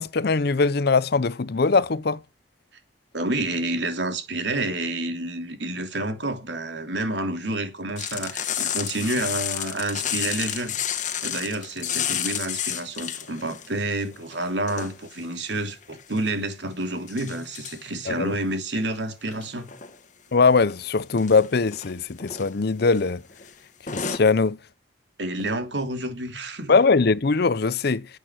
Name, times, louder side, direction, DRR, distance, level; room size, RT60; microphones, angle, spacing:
voice 1, 0.0-2.2 18.1-18.3 20.3-23.2 23.9-24.6 26.7-28.1, left 4 dB, 60° left, 0.6 m, -21 dB
voice 2, 3.1-10.8 11.2-19.7 25.2-26.8, right 2 dB, 75° right, 2.9 m, -29 dB
sound 1, 8.0-13.7 14.0-15.2 15.8-16.3 17.1-17.8 19.3-20.0 20.5-20.7 21.1-21.9 22.2-22.5 22.8-23.0 23.3-23.5 23.9-24.2, left 9 dB, 45° left, 1.5 m, -31 dB
11.0 x 8.2 x 9.8 m
head